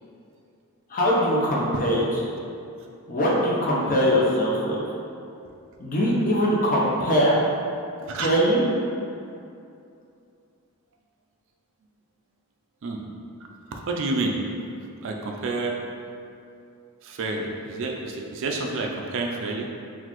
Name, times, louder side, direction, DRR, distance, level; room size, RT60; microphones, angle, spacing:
voice 1, 0.9-2.0 3.1-4.8 5.8-7.3 8.1-8.6, equal, 40° left, -4 dB, 0.6 m, -22 dB
voice 2, 13.7-14.4 15.0-15.7 17.0-19.7, right 3 dB, 60° right, 1 dB, 0.4 m, -29 dB
3.9 x 2.4 x 3.0 m, 2.6 s
head